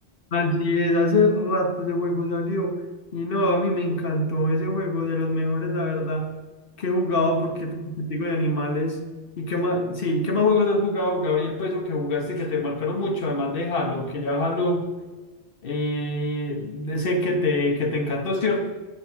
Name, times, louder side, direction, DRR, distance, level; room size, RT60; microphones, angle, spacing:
voice 1, 0.3-2.8 3.1-6.4 6.8-9.0 9.4-14.9 15.6-18.6, left 2 dB, 55° left, 4 dB, 1.1 m, -24 dB
7.1 x 4.7 x 7.1 m, 1.3 s
omnidirectional pair, 1.2 m